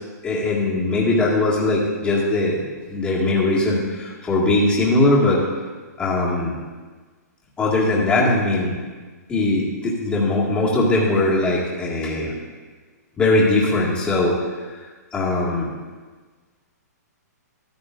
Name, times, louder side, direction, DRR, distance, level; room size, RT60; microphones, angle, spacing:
voice 1, 0.2-2.6 2.9-5.4 6.0-6.5 7.6-8.8 9.3-12.3 13.2-14.4 15.1-15.7, left 2 dB, 10° left, -5 dB, 2.0 m, -20 dB
13.5 x 12.0 x 2.6 m, 1.4 s
hypercardioid pair, 165°, 9 cm